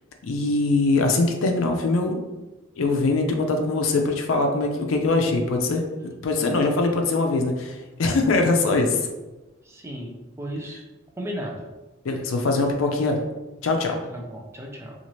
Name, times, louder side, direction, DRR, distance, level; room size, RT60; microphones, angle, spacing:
voice 1, 0.2-2.2 2.8-9.1 12.0-13.2 13.6-14.0, left 3 dB, 75° left, 3 dB, 0.4 m, -22 dB
voice 2, 9.6-10.8 11.2-11.7 14.1-14.9, equal, 15° right, 0 dB, 0.4 m, -35 dB
2.8 x 2.4 x 3.0 m, 1.1 s
head